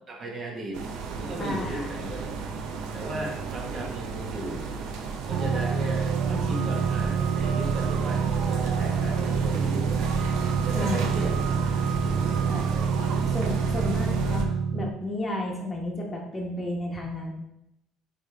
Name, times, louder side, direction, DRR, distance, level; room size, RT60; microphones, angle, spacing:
voice 1, 0.1-0.8 1.2-2.3 2.9-4.7 5.3-10.3 10.6-11.5 12.0-13.8 14.2-14.5, right 1 dB, 35° right, 0 dB, 1.3 m, -37 dB
sound 1, 0.7-14.4, right 4 dB, 80° right, 0.8 m, -33 dB
voice 2, 1.4-1.9 6.3-6.7 10.7-11.2 12.5-12.7 13.3-14.5 14.7-17.3, left 1 dB, 20° left, -1 dB, 1.1 m, -32 dB
sound 2, 5.3-14.9, right 6 dB, 55° right, 0.4 m, -27 dB
8.9 x 3.4 x 3.4 m, 0.84 s
cardioid pair, 145°, 0 cm